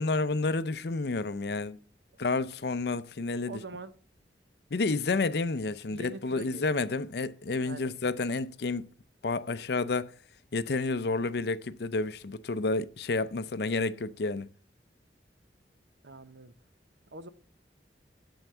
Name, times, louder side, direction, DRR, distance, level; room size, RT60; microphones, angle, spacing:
voice 1, 0.0-1.8 2.2-3.6 4.7-8.9 9.2-10.1 10.5-14.5, left 3 dB, 65° left, 0.6 m, -30 dB
voice 2, 3.5-3.9 5.9-6.6 7.6-7.9 16.0-16.5 17.1-17.3, right 3 dB, 85° right, 0.8 m, -44 dB
7.9 x 7.2 x 6.7 m
head